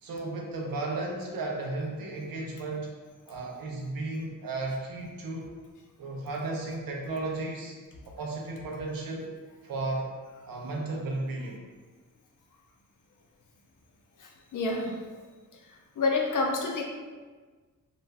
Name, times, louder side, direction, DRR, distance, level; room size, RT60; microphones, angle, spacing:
voice 1, 0.0-2.9 3.3-5.6 6.0-7.7 8.1-9.3 9.6-10.1 10.5-11.6, right 2 dB, 80° right, -1 dB, 0.6 m, -34 dB
voice 2, 14.2-14.9 16.0-16.8, left 3 dB, 65° left, 1 dB, 0.5 m, -28 dB
2.5 x 2.0 x 3.3 m, 1.4 s
wide cardioid pair, 95°, 34 cm